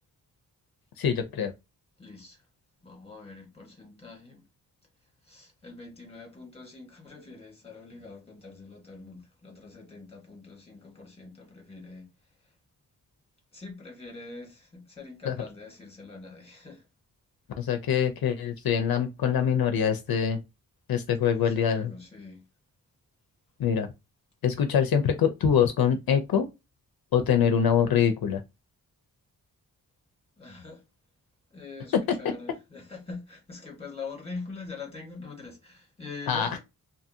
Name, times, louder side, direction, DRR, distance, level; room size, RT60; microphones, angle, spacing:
voice 1, 1.0-1.5 15.3-15.4 17.6-20.4 20.9-21.9 23.6-23.9 24.4-26.5 27.1-28.4 36.3-36.5, left 8 dB, 70° left, 0.5 m, -24 dB
voice 2, 2.0-2.5 2.8-4.4 5.2-12.5 13.5-16.9 21.2-22.4 30.4-30.8 31.5-36.6, left 4 dB, 15° left, 1.3 m, -44 dB
2.6 x 2.5 x 2.7 m
wide cardioid pair, 105°, 37 cm